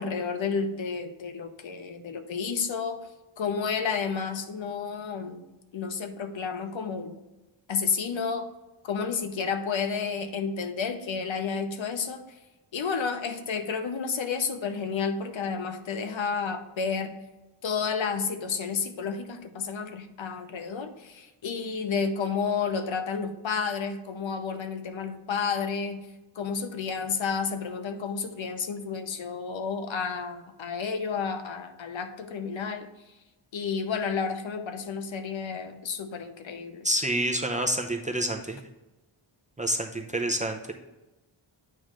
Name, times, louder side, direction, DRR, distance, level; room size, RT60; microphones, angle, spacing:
voice 1, 0.0-3.0 3.4-5.4 5.7-7.2 7.7-8.5 8.8-12.2 12.7-17.1 17.6-26.1 26.4-32.9 33.5-36.9, left 5 dB, 65° left, 8 dB, 0.9 m, -31 dB
voice 2, 36.8-38.6 39.6-40.7, right 1 dB, 15° right, 2 dB, 0.6 m, -28 dB
8.8 x 3.1 x 5.1 m, 1.0 s
wide cardioid pair, 90°, 49 cm